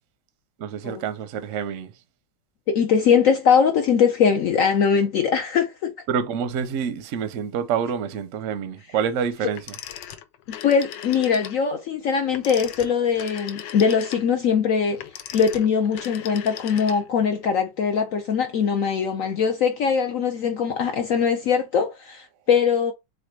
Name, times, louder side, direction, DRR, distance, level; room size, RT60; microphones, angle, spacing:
voice 1, 0.6-1.9 6.1-9.6, right 7 dB, 65° right, 0.8 m, -27 dB
voice 2, 2.7-5.9 10.5-15.0 15.3-22.9, left 6 dB, 70° left, 0.8 m, -21 dB
Telephone, 9.5-11.6 12.3-17.3, left 10 dB, 85° left, 1.4 m, -38 dB
4.2 x 2.5 x 4.5 m
omnidirectional pair, 1.9 m